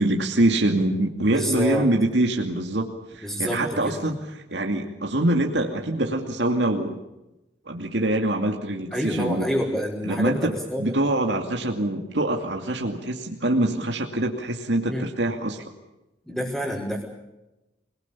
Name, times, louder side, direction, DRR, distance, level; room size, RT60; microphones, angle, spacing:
voice 1, 0.0-7.0 7.7-9.5 10.0-15.6, right 1 dB, 65° right, 2 dB, 2.5 m, -24 dB
voice 2, 1.3-1.8 3.2-4.0 8.9-10.9 14.9-15.0 16.3-17.0, equal, ahead, -4 dB, 5.5 m, -28 dB
28.0 x 20.5 x 7.0 m, 0.97 s
head